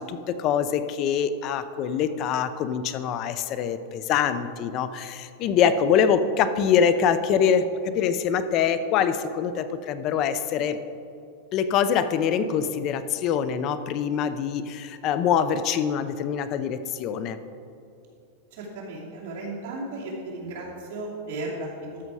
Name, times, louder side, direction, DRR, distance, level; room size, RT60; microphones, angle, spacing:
voice 1, 0.0-7.6 7.9-10.8 11.5-17.4, left 7 dB, 35° left, 12 dB, 0.5 m, -24 dB
voice 2, 18.6-22.0, right 2 dB, 60° right, -4 dB, 2.7 m, -35 dB
13.0 x 6.4 x 4.8 m, 2.6 s
supercardioid pair, 160°, 0 cm